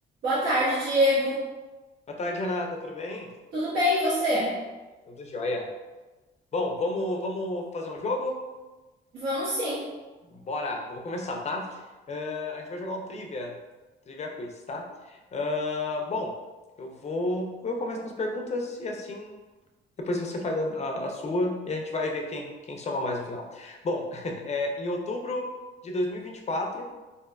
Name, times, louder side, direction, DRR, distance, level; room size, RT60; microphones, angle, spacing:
voice 1, 0.2-1.5 3.5-4.6 9.1-9.9, equal, 70° right, -9 dB, 0.7 m, -25 dB
voice 2, 2.1-3.3 5.1-5.7 6.5-8.4 10.3-11.8 12.1-13.5 14.1-16.3 16.8-19.4 20.0-25.5 25.8-26.9, left 2 dB, 35° left, 2 dB, 0.4 m, -31 dB
2.5 x 2.2 x 2.2 m, 1.2 s
cardioid pair, 90°, 20 cm